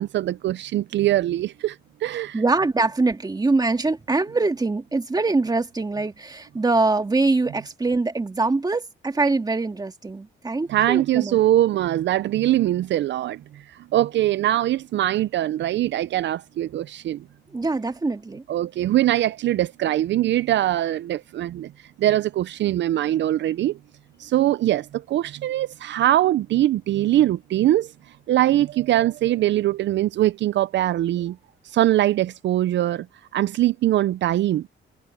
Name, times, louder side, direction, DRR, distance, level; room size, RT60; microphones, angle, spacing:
voice 1, 0.0-2.4 10.7-17.2 18.5-21.7 22.0-23.8 24.2-27.9 28.3-31.4 31.6-33.1 33.3-34.7, right 13 dB, 65° right, 0.5 m, -22 dB
voice 2, 2.3-11.4 17.5-18.4, right 3 dB, 20° right, 1.9 m, -23 dB
cardioid pair, 90°, 20 cm